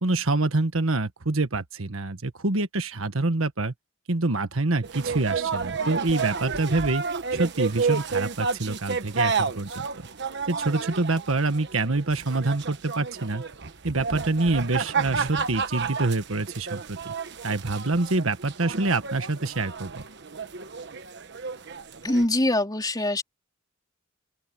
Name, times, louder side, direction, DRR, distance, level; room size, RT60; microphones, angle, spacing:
voice 1, 0.0-3.7 4.1-7.0 7.3-9.9 10.5-13.4 13.8-17.1 17.4-20.0, right 2 dB, 75° right, 1.5 m, -26 dB
sound 1, 4.8-22.2, right 5 dB, 55° right, 1.2 m, -31 dB
voice 2, 22.0-23.2, left 1 dB, 20° left, 3.8 m, -23 dB
open air
head